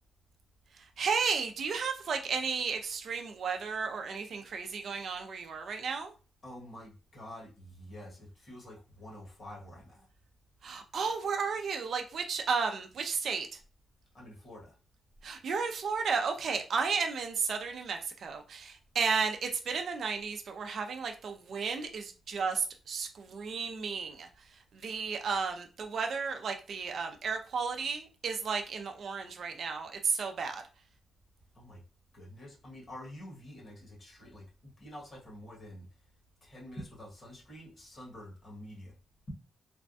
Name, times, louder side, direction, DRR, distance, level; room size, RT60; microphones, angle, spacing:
voice 1, 1.0-6.1 10.6-13.5 15.2-24.3 24.8-30.6, right 5 dB, 55° right, 0.4 m, -33 dB
voice 2, 6.4-10.0 14.1-14.7 31.5-31.8 32.1-34.4 34.8-35.8 36.4-38.9, left 1 dB, 40° left, 1.4 m, -48 dB
3.3 x 2.1 x 2.6 m
cardioid pair, 130°, 0 cm